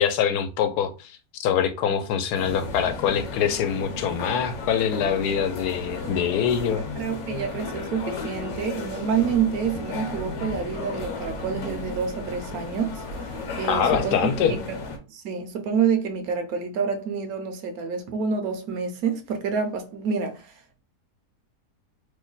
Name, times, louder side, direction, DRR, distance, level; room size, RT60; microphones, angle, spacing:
voice 1, 0.0-6.8 13.7-14.5, left 8 dB, 80° left, 1.1 m, -24 dB
sound 1, 2.3-15.0, left 3 dB, 55° left, 1.0 m, -34 dB
voice 2, 6.7-14.2 14.5-14.6 15.1-20.5, right 6 dB, 70° right, 1.0 m, -28 dB
3.0 x 2.1 x 3.8 m
omnidirectional pair, 1.7 m